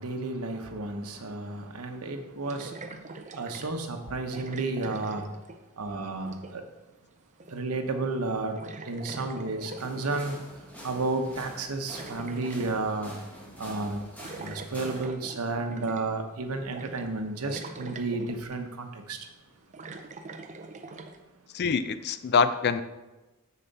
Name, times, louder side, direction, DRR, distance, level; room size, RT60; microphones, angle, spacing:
voice 1, 0.0-3.0 3.4-5.2 5.8-6.6 7.5-8.6 8.8-10.4 10.8-13.1 13.6-14.1 14.4-19.2, right 3 dB, 85° right, 5 dB, 1.0 m, -32 dB
sound 1, 1.5-1.6 2.4-3.8 4.3-5.8 6.1-6.7 7.4-7.8 8.1-8.2 8.6-10.4 11.5-12.8 14.2-16.2 16.7-17.2 17.5-18.6 19.3-21.2, right 3 dB, 35° right, 0.6 m, -43 dB
sound 2, 9.8-15.0, equal, 5° left, 1.6 m, -46 dB
voice 2, 21.5-22.8, left 5 dB, 50° left, 12 dB, 0.4 m, -25 dB
7.0 x 6.9 x 4.1 m, 1.1 s
head